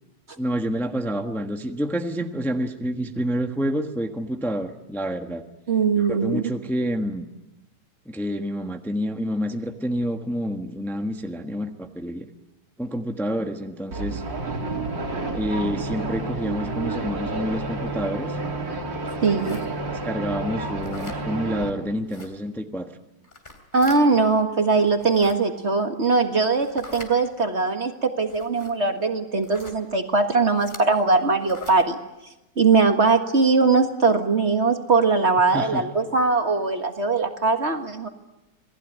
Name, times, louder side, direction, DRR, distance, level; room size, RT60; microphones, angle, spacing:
voice 1, 0.4-5.4 6.1-7.2 8.1-12.3 12.8-14.2 15.3-18.4 19.9-22.9 35.5-35.8, equal, ahead, 5 dB, 1.2 m, -28 dB
voice 2, 5.7-6.4 19.2-19.6 23.7-32.0 32.6-38.1, right 4 dB, 40° right, 6 dB, 1.8 m, -21 dB
sound 1, 13.9-21.7, right 2 dB, 85° right, 3.9 m, -30 dB
sound 2, 19.4-19.7 20.8-21.2 22.1-22.3 23.2-24.0 24.9-25.3 26.6-27.1 28.3-28.7 29.4-29.8 30.6-30.8 31.4-31.8, left 3 dB, 25° left, 3.2 m, -42 dB
28.0 x 19.5 x 9.4 m, 1.0 s
omnidirectional pair, 2.0 m